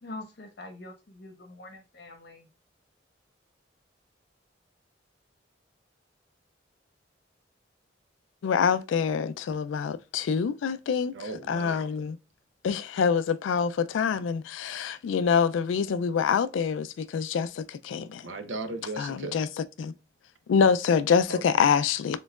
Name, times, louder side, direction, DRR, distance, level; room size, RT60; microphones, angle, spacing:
voice 1, 0.0-2.5, left 2 dB, 60° left, 1.1 m, -44 dB
voice 2, 8.4-11.2 11.5-12.1 12.6-18.2 19.0-19.5 19.8-19.9 20.5-22.2, left 6 dB, 90° left, 0.3 m, -25 dB
voice 3, 11.1-11.9 18.2-19.4 21.3-21.8, right 3 dB, 85° right, 0.7 m, -37 dB
4.2 x 3.8 x 2.3 m
head